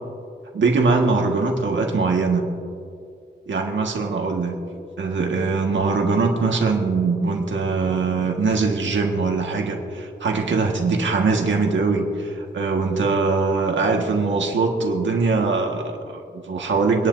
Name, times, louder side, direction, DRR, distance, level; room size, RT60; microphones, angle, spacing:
voice 1, 0.5-2.5 3.5-4.5 5.0-17.1, right 4 dB, 85° right, 2 dB, 1.6 m, -22 dB
25.0 x 11.0 x 2.7 m, 2.3 s
wide cardioid pair, 175°, 19 cm